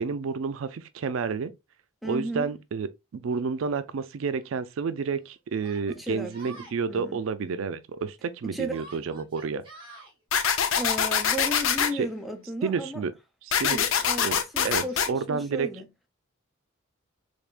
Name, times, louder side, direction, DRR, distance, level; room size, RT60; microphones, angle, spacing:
voice 1, 0.0-1.5 2.0-9.6 11.9-12.1 12.6-13.1 13.4-13.8 14.2-14.4 14.6-15.7, right 5 dB, 75° right, 0.4 m, -30 dB
voice 2, 2.0-2.5 5.9-7.2 8.4-8.8 10.7-13.0 13.6-15.9, equal, ahead, 0.5 m, -35 dB
Yell, 3.3-3.4 4.4-4.5 5.6-6.8 8.7-10.1, right 2 dB, 25° right, 1.7 m, -47 dB
sound 1, 10.3-11.9 13.5-15.1, left 7 dB, 80° left, 0.5 m, -24 dB
3.5 x 3.3 x 2.3 m
head